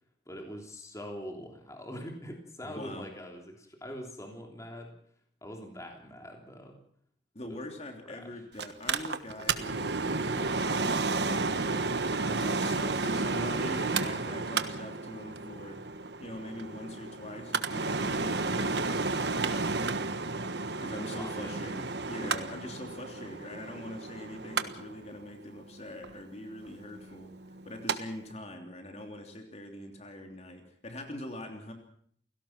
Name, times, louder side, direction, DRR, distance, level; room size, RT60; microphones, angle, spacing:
voice 1, 0.3-4.9 5.4-6.8 7.5-7.6 8.1-8.3 20.2-20.5 20.9-21.6, equal, 15° left, 2 dB, 3.2 m, -43 dB
voice 2, 2.6-3.1 7.3-12.0 12.3-19.5 20.7-31.7, left 1 dB, 35° left, 4 dB, 3.1 m, -43 dB
Mechanical fan, 8.6-28.0 28.3-28.4, right 3 dB, 60° right, 1.3 m, -32 dB
29.5 x 17.5 x 6.0 m, 0.63 s
head